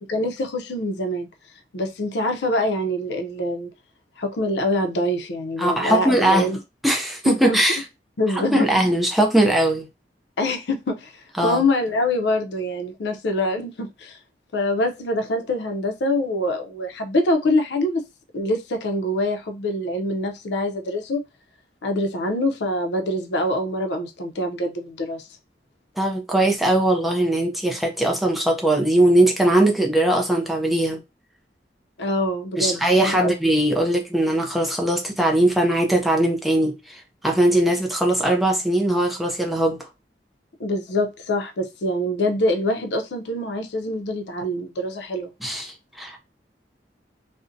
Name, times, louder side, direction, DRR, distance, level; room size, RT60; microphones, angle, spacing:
voice 1, 0.1-1.3 1.7-3.7 4.2-6.6 7.3-7.6 8.2-8.7 10.4-11.1 11.4-14.2 14.5-18.0 18.3-21.2 21.8-25.2 32.0-33.4 40.6-45.3, left 1 dB, 75° left, 0.5 m, -24 dB
voice 2, 5.6-6.5 6.8-7.8 8.3-9.9 11.4-11.6 26.0-31.0 32.6-39.8 45.4-46.2, right 1 dB, ahead, 0.4 m, -20 dB
2.5 x 2.1 x 2.5 m
head